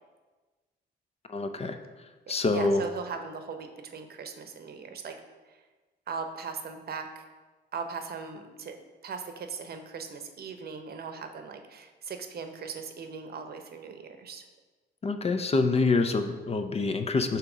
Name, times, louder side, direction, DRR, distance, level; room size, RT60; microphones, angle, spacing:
voice 1, 1.3-1.8 2.3-2.8 15.0-17.4, left 3 dB, 30° left, 8 dB, 0.5 m, -26 dB
voice 2, 2.4-5.1 5.5-5.6 6.1-7.2 7.7-8.8 9.0-14.4, right 5 dB, 50° right, 6 dB, 0.8 m, -39 dB
7.7 x 2.9 x 6.0 m, 1.3 s
cardioid pair, 90°, 20 cm